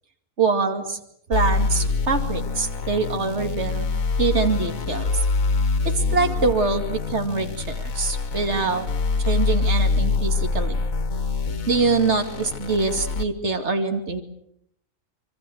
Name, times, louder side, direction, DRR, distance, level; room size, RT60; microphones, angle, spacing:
voice 1, 0.4-1.0 1.3-3.9 4.2-5.1 6.1-8.9 9.2-10.8 11.7-14.2, right 4 dB, 55° right, 6 dB, 2.8 m, -24 dB
sound 1, 1.3-13.2, left 4 dB, 85° left, 1.8 m, -25 dB
26.0 x 24.0 x 7.9 m, 0.73 s
omnidirectional pair, 1.4 m